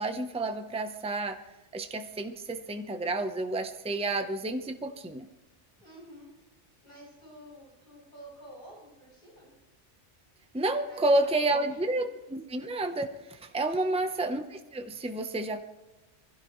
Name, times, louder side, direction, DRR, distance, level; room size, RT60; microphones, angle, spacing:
voice 1, 0.0-1.4 1.7-5.3 10.5-15.6, right 2 dB, 5° right, 6 dB, 0.8 m, -30 dB
voice 2, 5.8-6.3 6.8-9.5 10.8-12.1 13.7-14.1, equal, 50° left, -4 dB, 8.0 m, -50 dB
24.0 x 16.0 x 3.2 m, 1.1 s
omnidirectional pair, 1.2 m